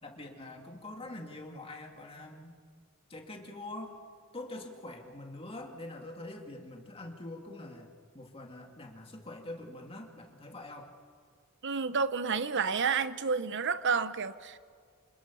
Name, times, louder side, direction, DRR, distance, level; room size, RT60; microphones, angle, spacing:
voice 1, 0.0-2.5 3.1-4.0 4.3-7.9 8.1-10.9, left 2 dB, 25° left, 2 dB, 2.4 m, -44 dB
voice 2, 11.6-14.6, right 5 dB, 55° right, 13 dB, 0.8 m, -30 dB
27.0 x 27.0 x 5.6 m, 2.1 s
head